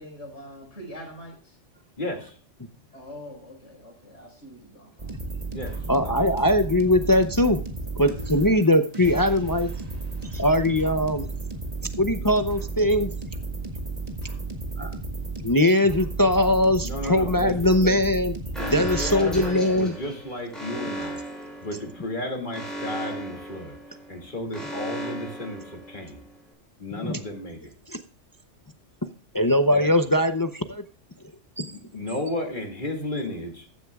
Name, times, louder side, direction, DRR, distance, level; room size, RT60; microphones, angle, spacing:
voice 1, 0.0-1.6 2.9-5.1, equal, 70° left, 0 dB, 5.0 m, -43 dB
voice 2, 2.0-2.4 5.5-5.8 6.0-6.3 16.8-18.1 18.6-23.8 24.1-26.2 26.8-27.7 29.7-29.9 31.7-33.7, left 1 dB, 40° left, 2 dB, 2.5 m, -33 dB
sound 1, 5.0-19.5, right 3 dB, 30° right, 1.9 m, -33 dB
voice 3, 5.9-7.6 8.0-9.7 10.2-11.3 12.0-13.1 14.8-14.9 15.4-18.3 18.7-19.9 27.0-27.2 27.9-28.0 29.3-30.8 31.6-31.7, left 1 dB, 25° left, 8 dB, 0.5 m, -21 dB
Alarm, 18.5-26.3, right 1 dB, ahead, 6.3 m, -36 dB
14.5 x 9.8 x 2.3 m, 0.41 s
omnidirectional pair, 1.3 m